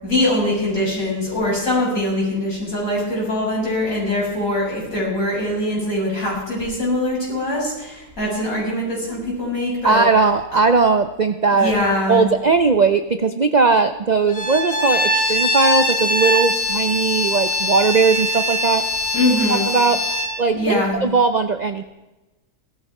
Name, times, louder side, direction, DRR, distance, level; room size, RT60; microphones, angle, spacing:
voice 1, 0.0-10.0 11.6-12.2 19.1-19.7 20.5-21.0, left 1 dB, 60° left, -5 dB, 7.7 m, -22 dB
voice 2, 9.8-11.8 12.1-18.8 19.5-20.0 20.4-21.8, right 4 dB, 55° right, 9 dB, 0.4 m, -18 dB
Bowed string instrument, 14.3-20.4, left 1 dB, 85° left, 2.5 m, -22 dB
17.0 x 13.5 x 4.9 m, 1.1 s
omnidirectional pair, 1.7 m